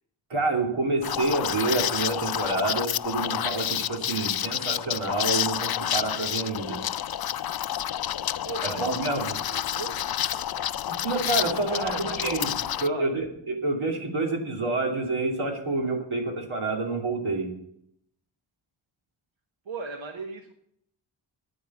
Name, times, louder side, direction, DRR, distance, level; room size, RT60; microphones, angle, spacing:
voice 1, 0.3-6.8 8.6-9.3 10.9-12.5 12.8-17.5, right 3 dB, 90° right, 0 dB, 3.0 m, -28 dB
Liquid, 1.0-12.9, left 11 dB, 50° left, 0.5 m, -29 dB
voice 2, 8.4-10.0 10.3-10.4 11.7-13.1 19.7-20.5, right 4 dB, 70° right, 3 dB, 1.4 m, -37 dB
11.0 x 9.3 x 7.1 m, 0.74 s
cardioid pair, 55°, 48 cm